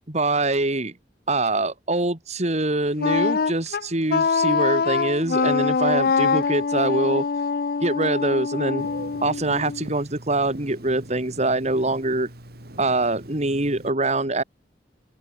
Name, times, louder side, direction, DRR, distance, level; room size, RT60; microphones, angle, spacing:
voice 1, 0.1-0.9 1.3-7.3 7.8-8.9 9.2-12.3 12.8-14.4, right 2 dB, 40° right, 2.7 m, -24 dB
Wind instrument woodwind instrument, 3.0-9.9, left 5 dB, 60° left, 0.5 m, -24 dB
Telephone, 8.8-13.9, right 1 dB, 60° right, 4.0 m, -41 dB
open air
head